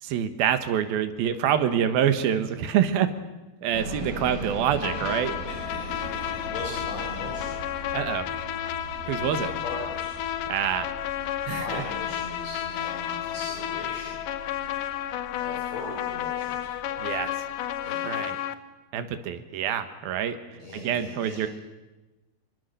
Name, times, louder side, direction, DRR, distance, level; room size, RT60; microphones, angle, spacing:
voice 1, 0.0-3.1 3.6-5.4 7.9-8.3 9.1-9.5 10.5-10.9 11.4-11.8 17.0-17.4 18.0-18.4 18.9-20.4 20.7-21.5, right 9 dB, 90° right, 10 dB, 3.2 m, -26 dB
sound 1, 3.7-17.8, right 1 dB, 70° right, 5.9 m, -41 dB
sound 2, 4.8-18.5, left 11 dB, 70° left, 2.4 m, -32 dB
voice 2, 5.5-7.6 9.0-10.1 11.5-14.2 15.4-16.7 17.8-18.3 20.6-21.5, left 2 dB, 45° left, -1 dB, 5.2 m, -39 dB
26.0 x 23.5 x 6.7 m, 1.1 s
omnidirectional pair, 4.2 m